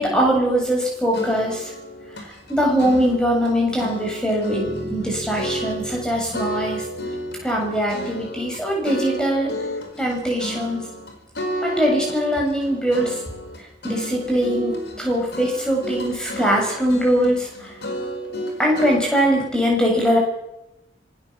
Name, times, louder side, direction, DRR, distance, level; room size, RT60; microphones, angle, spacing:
voice 1, 0.0-1.7 2.1-6.9 7.4-9.5 10.0-10.9 11.6-13.2 13.6-17.7 18.6-20.2, equal, 5° left, -1 dB, 7.5 m, -22 dB
sound 1, 0.6-3.5 3.8-6.1 6.3-19.0, equal, 70° left, 4.7 m, -32 dB
Bass guitar, 4.7-9.1, left 2 dB, 45° right, 7.7 m, -41 dB
26.0 x 17.0 x 7.5 m, 0.89 s
head